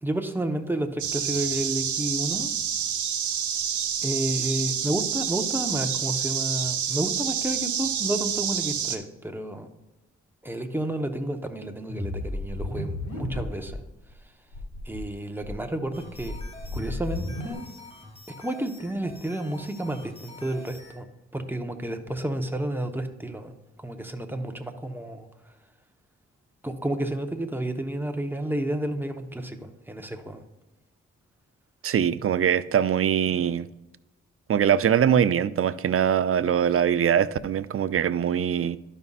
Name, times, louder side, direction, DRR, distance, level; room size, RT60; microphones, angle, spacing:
voice 1, 0.0-2.5 4.0-9.7 10.4-14.5 14.8-16.4 16.7-17.7 18.4-21.1 21.3-25.6 26.6-30.4, right 1 dB, 5° right, 1.0 m, -31 dB
sound 1, 1.0-9.0, right 8 dB, 80° right, 0.8 m, -28 dB
sound 2, 11.9-13.8 14.1-14.2 14.5-15.0 15.4-17.5, left 2 dB, 75° left, 1.9 m, -33 dB
sound 3, 15.9-21.0, left 3 dB, 20° left, 1.8 m, -47 dB
voice 2, 31.8-33.7 34.5-38.8, right 8 dB, 50° right, 0.5 m, -22 dB
12.0 x 5.5 x 2.5 m
cardioid pair, 60°, 29 cm